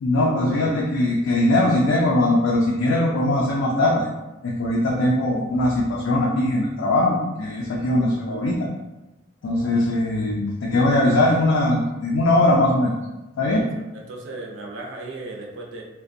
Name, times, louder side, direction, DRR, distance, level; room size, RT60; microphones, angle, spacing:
voice 1, 0.0-4.1 4.4-8.7 9.4-12.9 13.4-13.7, left 1 dB, 75° left, -2 dB, 0.3 m, -20 dB
voice 2, 13.9-15.8, right 2 dB, 65° right, -1 dB, 0.5 m, -36 dB
2.5 x 2.1 x 2.5 m, 1.0 s
head